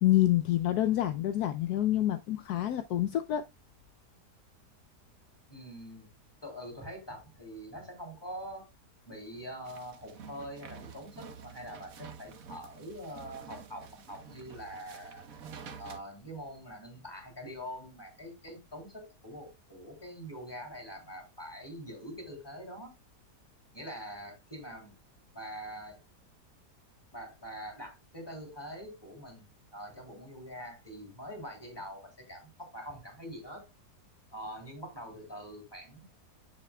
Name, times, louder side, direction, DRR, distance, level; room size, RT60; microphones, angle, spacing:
voice 1, 0.0-3.4, left 13 dB, 75° left, 1.1 m, -27 dB
voice 2, 5.5-6.1 6.4-8.7 9.0-15.2 15.8-22.9 23.7-24.9 25.3-26.0 27.1-29.5 29.7-33.7 34.3-36.0, equal, 15° left, 3.3 m, -44 dB
sound 1, 9.6-16.0, right 6 dB, 60° right, 1.4 m, -49 dB
9.9 x 7.3 x 2.3 m
omnidirectional pair, 1.8 m